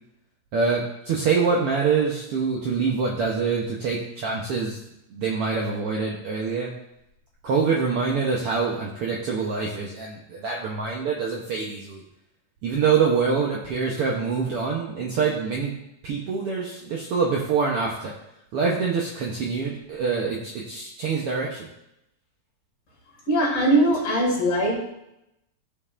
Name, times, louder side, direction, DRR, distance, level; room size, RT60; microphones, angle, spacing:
voice 1, 0.5-4.8 5.1-6.7 7.4-12.0 12.6-15.7 16.0-18.1 18.5-21.7, right 5 dB, 70° right, -2 dB, 1.4 m, -25 dB
voice 2, 23.3-24.8, right 1 dB, 50° left, -2 dB, 2.7 m, -20 dB
14.0 x 5.5 x 2.5 m, 0.84 s
omnidirectional pair, 3.5 m